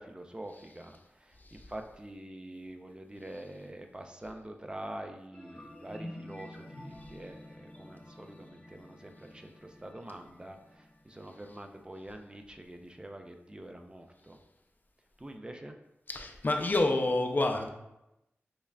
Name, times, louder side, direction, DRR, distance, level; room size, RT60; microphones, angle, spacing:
voice 1, 0.0-14.4 15.2-15.7, right 1 dB, 20° right, 4 dB, 0.3 m, -46 dB
sound 1, 5.3-12.4, left 1 dB, 25° left, 0.8 m, -49 dB
voice 2, 16.1-17.7, left 2 dB, 45° left, 4 dB, 0.4 m, -28 dB
5.3 x 2.4 x 2.2 m, 0.91 s
cardioid pair, 55°, 5 cm